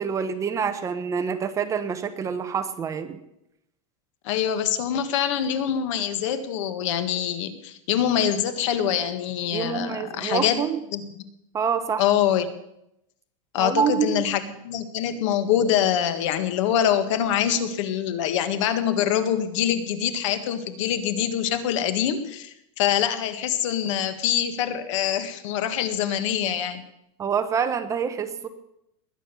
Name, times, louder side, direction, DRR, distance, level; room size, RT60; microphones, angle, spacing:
voice 1, 0.0-3.2 9.5-10.8 11.5-12.1 13.6-14.2 27.2-28.5, right 7 dB, 20° right, 9 dB, 1.0 m, -26 dB
voice 2, 4.2-10.6 10.9-11.2 12.0-12.5 13.5-26.8, left 9 dB, 65° left, 11 dB, 1.8 m, -24 dB
20.5 x 9.1 x 7.0 m, 0.82 s
supercardioid pair, 165°, 17 cm